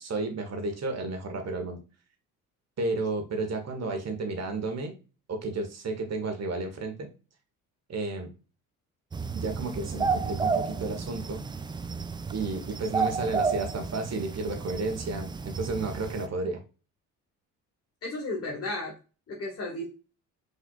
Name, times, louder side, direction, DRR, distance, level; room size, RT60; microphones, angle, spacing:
voice 1, 0.0-1.8 2.8-4.9 5.3-7.1 7.9-8.3 9.3-11.4 12.3-16.6, right 3 dB, 35° right, 5 dB, 1.5 m, -32 dB
sound 1, 9.1-16.3, right 5 dB, 10° right, 0.4 m, -32 dB
voice 2, 18.0-19.0 19.3-19.9, left 2 dB, 30° left, -1 dB, 1.5 m, -33 dB
6.0 x 3.3 x 2.5 m, 0.32 s
figure-of-eight pair, 50°, 45 cm